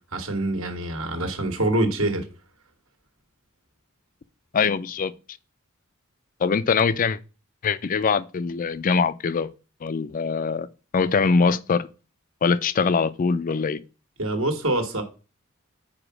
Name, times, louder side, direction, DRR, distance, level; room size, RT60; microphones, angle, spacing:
voice 1, 0.1-2.2 14.2-15.0, right 1 dB, 70° right, 1.6 m, -25 dB
voice 2, 4.5-5.1 6.4-7.2 7.6-9.5 9.8-10.7 10.9-11.9 12.4-13.8, left 5 dB, 40° left, 0.4 m, -22 dB
5.0 x 4.7 x 6.0 m
head